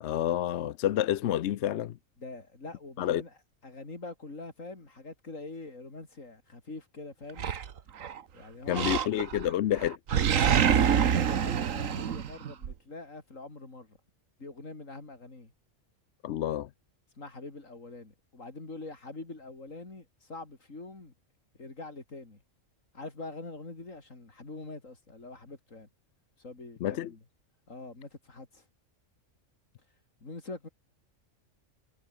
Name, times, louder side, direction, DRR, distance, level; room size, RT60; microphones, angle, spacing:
voice 1, 0.0-2.0 3.0-3.2 8.7-10.0 16.2-16.7 26.8-27.1, left 12 dB, 65° left, 0.8 m, -29 dB
voice 2, 2.2-3.3 3.6-7.5 8.3-8.9 10.7-14.0 14.4-15.5 17.2-21.1 21.6-22.4 22.9-25.9 26.4-27.2 27.7-28.6 30.2-30.7, left 3 dB, 85° left, 4.5 m, -44 dB
Animal, 7.4-8.2 8.7-9.5 9.8-12.7, right 8 dB, 90° right, 1.5 m, -26 dB
omnidirectional pair, 1.3 m